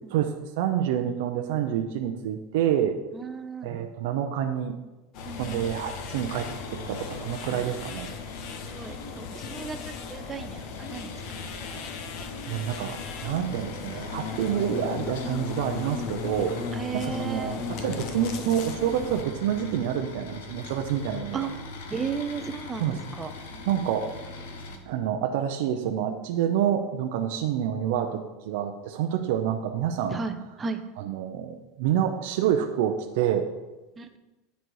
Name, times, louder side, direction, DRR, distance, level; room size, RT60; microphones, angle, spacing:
voice 1, 0.0-3.0 3.6-4.8 5.4-8.1 12.5-16.6 16.9-21.5 22.8-23.0 23.7-24.1 24.9-30.2 31.0-33.5, right 9 dB, 65° right, 4 dB, 0.5 m, -28 dB
voice 2, 3.1-3.8 5.3-5.7 7.5-7.6 8.6-11.9 16.7-17.6 21.3-21.5 21.9-23.6 24.7-24.8 30.1-30.8 34.0-34.2, right 5 dB, 15° right, 8 dB, 0.5 m, -35 dB
sound 1, 5.1-19.2, left 5 dB, 45° left, 0.6 m, -37 dB
sound 2, 5.2-24.8, left 3 dB, 90° left, 1.0 m, -42 dB
9.1 x 4.1 x 4.7 m, 1.1 s
supercardioid pair, 155°, 0 cm